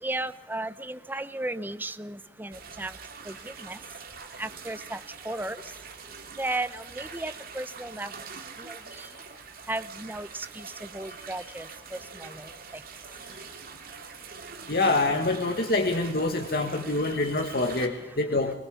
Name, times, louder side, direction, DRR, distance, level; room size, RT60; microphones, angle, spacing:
voice 1, 0.0-3.0 3.2-3.8 4.4-5.6 6.4-8.1 8.6-9.1 9.7-12.8, right 2 dB, 10° right, 14 dB, 0.7 m, -35 dB
sound 1, 2.5-17.9, right 5 dB, 55° right, 2.4 m, -44 dB
voice 2, 14.7-18.5, left 2 dB, 60° left, 4 dB, 1.8 m, -26 dB
23.5 x 20.0 x 7.1 m, 0.95 s
head